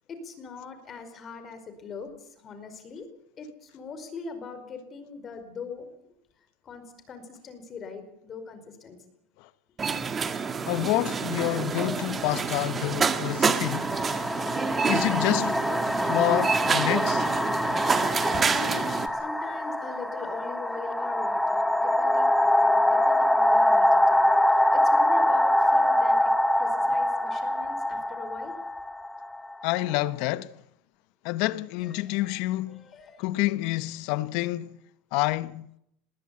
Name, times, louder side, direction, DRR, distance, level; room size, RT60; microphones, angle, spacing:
voice 1, 0.1-3.1 3.4-5.9 6.6-9.0 18.3-24.2 24.7-26.3 26.6-28.5 31.8-32.4 32.7-33.2, left 4 dB, 30° left, 5.0 m, -41 dB
sound 1, 9.8-19.1, right 5 dB, 25° right, 1.5 m, -28 dB
voice 2, 10.7-13.9 14.9-15.7 16.0-17.3 29.6-30.6 31.2-32.8 33.2-34.7 35.1-35.7, left 17 dB, 65° left, 0.9 m, -28 dB
sound 2, 12.0-12.2 13.1-29.8, left 1 dB, 5° left, 1.0 m, -24 dB
20.5 x 18.0 x 8.6 m
supercardioid pair, 125°, 0 cm